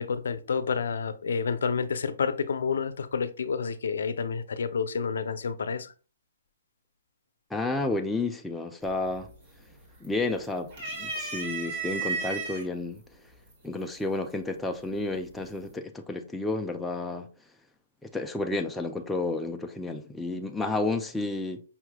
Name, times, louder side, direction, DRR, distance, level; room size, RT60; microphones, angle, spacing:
voice 1, 0.0-5.9, left 5 dB, 75° left, 0.5 m, -29 dB
voice 2, 7.5-9.3 10.0-13.0 13.6-17.3 18.0-21.6, left 2 dB, 5° left, 0.3 m, -31 dB
sound 1, 8.8-9.3 9.6-10.3 10.7-12.6 13.5-13.6 14.8-15.3, right 4 dB, 30° right, 1.6 m, -33 dB
5.5 x 3.0 x 2.2 m
hypercardioid pair, 165°, 0 cm